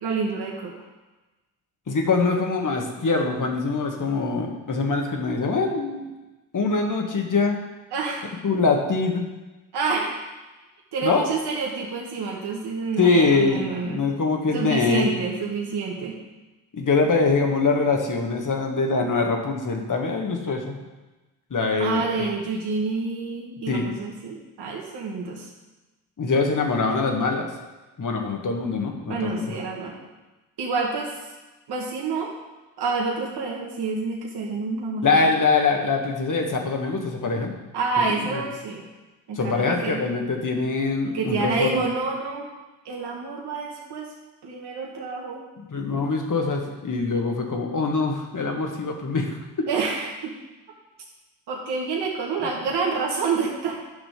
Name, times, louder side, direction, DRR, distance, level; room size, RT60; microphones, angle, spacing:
voice 1, 0.0-0.7 7.9-8.3 9.7-10.2 10.9-14.0 14.5-16.2 21.8-25.5 29.1-29.9 30.6-31.1 31.7-32.3 32.8-35.2 37.7-38.8 39.3-40.0 41.0-42.5 42.9-44.1 44.4-45.4 49.7-50.4 51.5-53.7, right 4 dB, 55° right, -2 dB, 1.7 m, -28 dB
voice 2, 1.9-6.0 6.5-7.6 8.4-9.2 11.0-11.3 13.0-15.1 16.7-20.8 21.5-22.3 23.7-23.8 26.2-27.5 28.0-29.6 35.0-37.5 38.3-38.4 39.4-41.7 45.6-49.7, left 4 dB, 40° left, 2 dB, 1.9 m, -23 dB
10.0 x 6.1 x 5.1 m, 1.1 s
hypercardioid pair, 45°, 48 cm